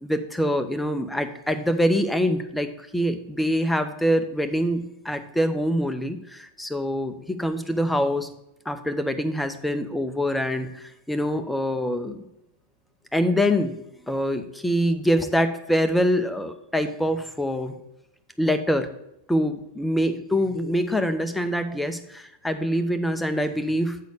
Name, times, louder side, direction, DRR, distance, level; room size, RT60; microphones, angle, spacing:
voice 1, 0.0-8.3 8.7-12.2 13.1-13.8 14.1-17.8 18.4-18.9 19.3-24.0, equal, 5° left, 8 dB, 0.7 m, -25 dB
8.3 x 4.1 x 6.5 m, 0.82 s
figure-of-eight pair, 90°, 0 cm